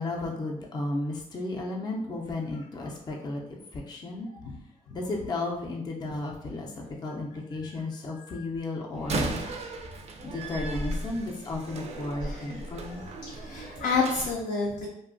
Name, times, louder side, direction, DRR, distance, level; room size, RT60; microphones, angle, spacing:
voice 1, 0.0-4.4 4.9-9.4 10.2-13.0, left 2 dB, 30° left, -1 dB, 0.4 m, -34 dB
voice 2, 8.1-8.5 12.2-12.6 13.3-14.9, left 4 dB, 80° left, -2 dB, 0.5 m, -30 dB
Slam, 8.9-14.3, right 2 dB, 50° right, 0.4 m, -35 dB
2.4 x 2.2 x 2.5 m, 0.75 s
cardioid pair, 110°, 15 cm